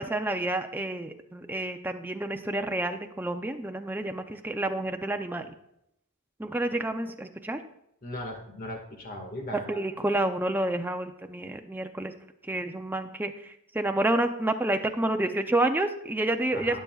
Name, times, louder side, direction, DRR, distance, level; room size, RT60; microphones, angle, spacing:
voice 1, 0.0-5.5 6.4-7.6 9.7-12.1 12.5-16.8, right 1 dB, 10° right, 6 dB, 0.5 m, -29 dB
voice 2, 8.0-9.8 16.5-16.8, left 1 dB, 40° left, 2 dB, 1.8 m, -38 dB
19.0 x 6.9 x 2.4 m, 0.78 s
head